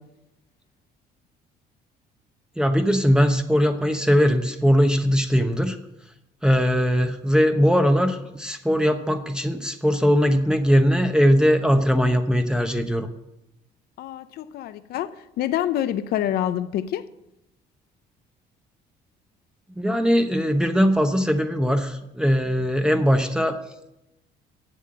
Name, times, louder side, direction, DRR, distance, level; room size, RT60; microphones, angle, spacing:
voice 1, 2.6-5.8 6.4-13.1 19.8-23.6, equal, 5° right, 0.8 m, -20 dB
voice 2, 14.0-15.1 15.4-17.1, left 11 dB, 65° left, 0.6 m, -26 dB
8.1 x 7.7 x 7.6 m
cardioid pair, 110°, 17 cm